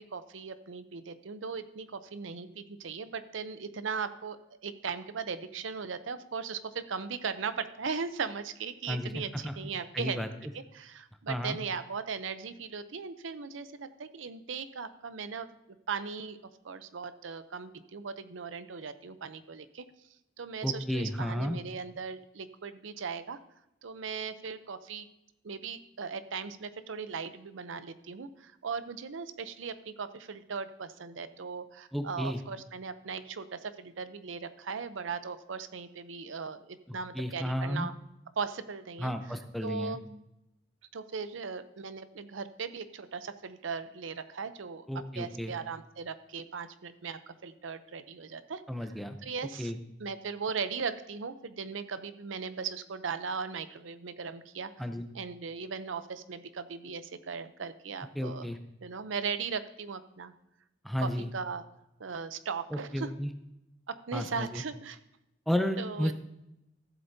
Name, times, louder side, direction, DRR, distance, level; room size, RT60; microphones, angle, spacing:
voice 1, 0.0-4.4 4.6-10.3 10.7-15.5 15.9-16.4 16.6-19.8 20.4-23.4 23.8-25.1 25.4-37.9 38.4-39.1 39.6-40.0 40.9-44.9 45.1-48.6 49.2-49.7 50.0-54.9 55.1-58.5 58.8-60.3 61.0-61.6 62.0-63.1 64.1-65.0 65.8-66.1, right 5 dB, 85° right, 12 dB, 0.6 m, -38 dB
voice 2, 8.9-9.6 9.9-10.3 11.3-11.6 20.6-21.6 31.9-32.4 36.9-37.9 39.0-40.0 44.9-45.5 48.7-49.2 49.6-49.8 54.8-55.0 58.1-58.6 60.8-61.3 62.7-63.3 64.1-64.6 65.5-66.1, equal, ahead, 6 dB, 0.6 m, -33 dB
14.5 x 7.8 x 2.7 m, 0.86 s
head